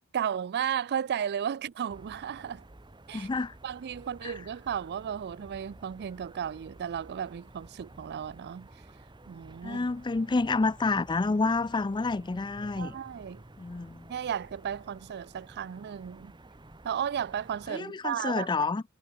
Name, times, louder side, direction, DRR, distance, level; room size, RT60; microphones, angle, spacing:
voice 1, 0.1-2.6 3.1-3.3 3.6-8.7 9.3-9.9 12.8-13.4 14.1-16.3 16.8-18.7, right 8 dB, 50° right, 0.4 m, -34 dB
sound 1, 1.9-17.7, right 1 dB, 20° right, 1.2 m, -52 dB
voice 2, 3.1-3.5 4.2-4.3 9.6-12.9 13.6-14.1 17.7-18.8, left 3 dB, 20° left, 0.4 m, -29 dB
head